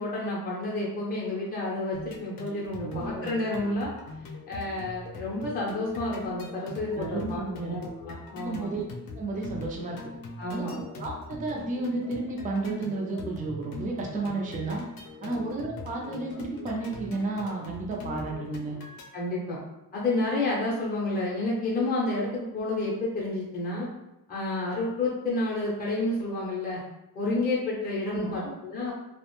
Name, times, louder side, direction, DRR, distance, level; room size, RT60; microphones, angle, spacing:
voice 1, 0.0-3.9 4.5-8.7 10.4-10.7 15.2-15.3 19.1-19.6 19.9-23.9 24.3-26.8 27.1-28.9, left 2 dB, 25° left, -5 dB, 0.6 m, -30 dB
sound 1, 1.9-19.1, left 3 dB, 75° left, 0.5 m, -42 dB
voice 2, 2.8-3.3 6.9-7.8 8.4-8.9 9.1-10.0 10.5-14.8 15.2-18.8 28.1-28.5, right 3 dB, 25° right, -2 dB, 0.4 m, -32 dB
2.4 x 2.1 x 2.9 m, 0.92 s
wide cardioid pair, 140°, 35 cm